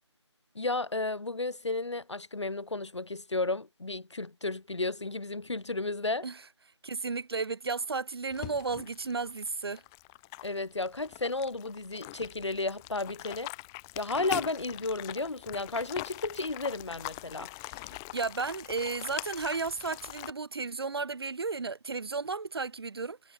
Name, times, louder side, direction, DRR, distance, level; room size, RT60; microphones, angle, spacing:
voice 1, 0.5-6.3 10.4-13.5 13.9-17.5, left 2 dB, 70° left, 1.3 m, -33 dB
voice 2, 6.8-9.8 18.1-23.3, right 4 dB, 55° right, 0.4 m, -33 dB
sound 1, 8.3-20.3, left 27 dB, 10° left, 0.8 m, -42 dB
figure-of-eight pair, 160°, 15 cm